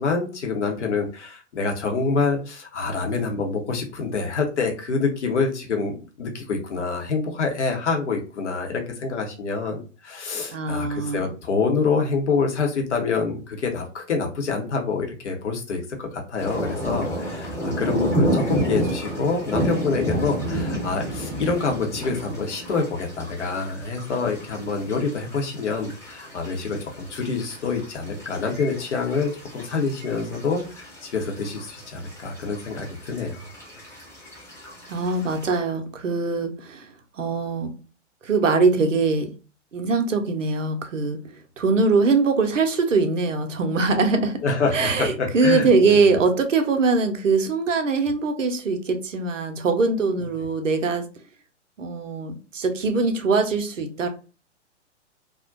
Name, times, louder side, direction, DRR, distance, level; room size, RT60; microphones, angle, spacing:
voice 1, 0.0-5.9 6.2-26.8 27.1-33.5 44.4-46.0, left 4 dB, 70° left, 2 dB, 0.8 m, -26 dB
voice 2, 10.5-11.3 34.9-37.7 38.2-39.3 39.7-41.2 41.6-44.4 44.7-51.1 51.8-54.1, right 4 dB, 80° right, 6 dB, 0.6 m, -22 dB
sound 1, 16.4-35.6, right 1 dB, 10° left, 0.9 m, -31 dB
2.4 x 2.1 x 2.4 m, 0.35 s
figure-of-eight pair, 110°, 37 cm